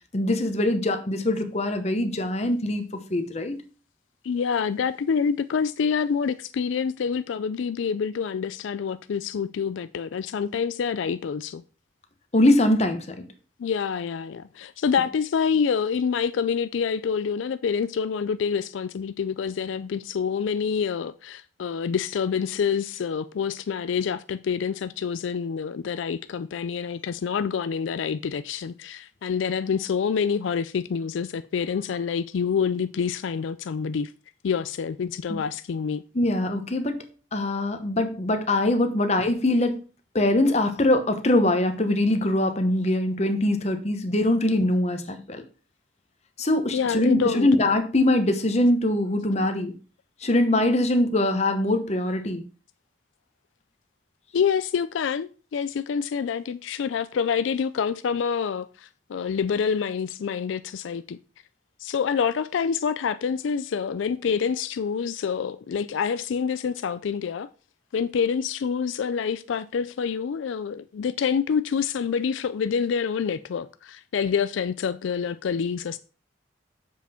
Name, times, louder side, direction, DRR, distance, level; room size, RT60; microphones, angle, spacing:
voice 1, 0.1-3.6 12.3-13.2 35.3-35.4 36.1-37.0 37.3-39.8 40.1-45.4 46.4-49.7 50.2-52.4, left 1 dB, 35° left, 1.1 m, -23 dB
voice 2, 4.2-11.6 13.6-34.1 34.4-36.0 46.7-47.5 54.3-61.2 61.8-67.5 67.9-76.0, left 6 dB, 85° left, 0.4 m, -27 dB
7.3 x 5.6 x 4.4 m
head